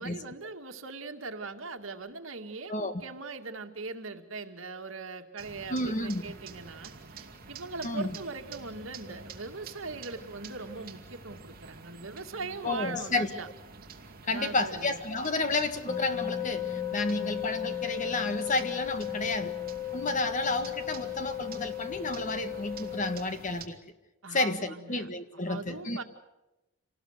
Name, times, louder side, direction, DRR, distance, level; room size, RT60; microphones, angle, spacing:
voice 1, 0.0-13.5 14.2-15.0 17.1-17.3 24.2-25.1 25.5-26.0, right 3 dB, 70° right, 5 dB, 2.1 m, -40 dB
voice 2, 2.7-3.0 5.7-6.2 7.8-8.1 12.6-13.3 14.3-19.5 19.9-23.8 24.3-26.0, left 2 dB, 35° left, 9 dB, 1.6 m, -31 dB
sound 1, 5.4-23.7, right 4 dB, 45° right, 2.6 m, -48 dB
sound 2, 15.9-23.2, left 11 dB, 15° left, 2.2 m, -35 dB
27.5 x 19.0 x 8.1 m, 0.98 s
head